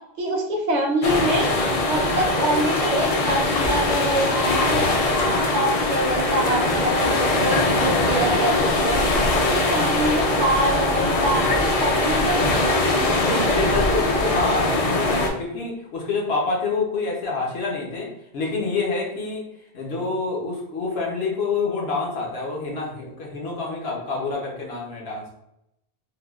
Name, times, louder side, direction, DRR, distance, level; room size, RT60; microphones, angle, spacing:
voice 1, 0.2-1.5 1.9-4.9 5.5-7.1 7.4-8.5 8.8-9.0 9.5-12.7, right 1 dB, 50° right, 1 dB, 0.6 m, -25 dB
sound 1, 1.0-15.3, left 2 dB, 55° left, 0.4 m, -21 dB
voice 2, 13.2-25.3, left 3 dB, 75° left, -2 dB, 1.0 m, -27 dB
3.5 x 2.2 x 2.3 m, 0.81 s
omnidirectional pair, 1.1 m